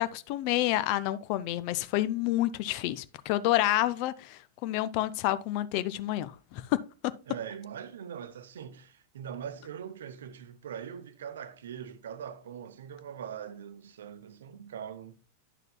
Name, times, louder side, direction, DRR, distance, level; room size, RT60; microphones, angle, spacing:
voice 1, 0.0-6.8, left 15 dB, 45° left, 0.4 m, -29 dB
voice 2, 7.3-15.2, right 8 dB, 60° right, 0.7 m, -42 dB
9.9 x 6.5 x 2.2 m
figure-of-eight pair, 90°, 0 cm